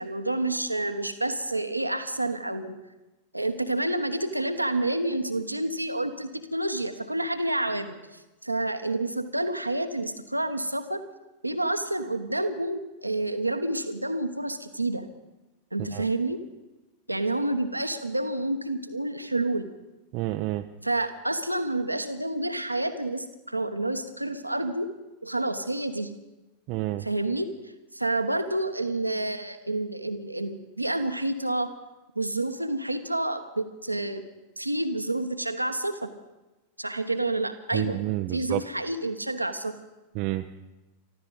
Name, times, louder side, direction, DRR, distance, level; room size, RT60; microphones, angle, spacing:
voice 1, 0.0-2.8 3.3-11.0 11.4-15.0 15.7-16.4 17.1-19.7 20.8-24.9 25.2-26.1 27.0-27.5 27.9-31.7 32.1-34.2 34.6-36.1 36.8-38.0 38.3-39.8, right 2 dB, 85° right, 8 dB, 1.1 m, -29 dB
voice 2, 20.1-20.7 26.7-27.1 37.7-38.6 40.1-40.5, right 17 dB, 40° right, 6 dB, 0.6 m, -29 dB
24.5 x 14.5 x 4.0 m, 1.1 s
figure-of-eight pair, 90°, 0 cm